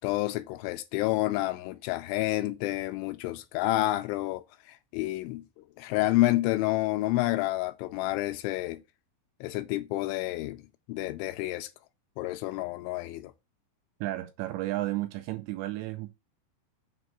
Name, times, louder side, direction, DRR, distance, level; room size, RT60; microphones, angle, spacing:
voice 1, 0.0-5.4 5.8-8.8 9.4-10.6 10.9-11.7 12.2-13.3, left 17 dB, 80° left, 2.8 m, -29 dB
voice 2, 14.0-16.1, right 16 dB, 80° right, 2.7 m, -33 dB
7.5 x 4.6 x 5.9 m
omnidirectional pair, 5.7 m